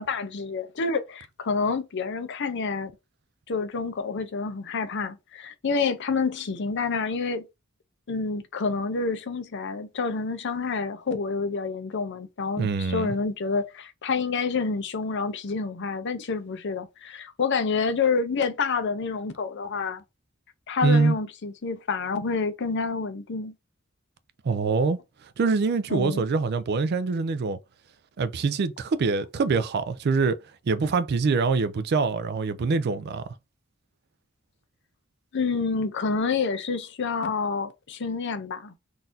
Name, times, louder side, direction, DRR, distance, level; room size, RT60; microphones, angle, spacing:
voice 1, 0.0-2.9 3.5-7.4 8.1-20.0 20.7-23.5 25.9-26.2 35.3-38.7, left 4 dB, 60° left, 0.6 m, -28 dB
voice 2, 12.6-13.1 20.8-21.2 24.4-27.6 28.2-30.4 30.7-33.2, right 4 dB, 50° right, 0.4 m, -24 dB
3.9 x 2.5 x 2.6 m
head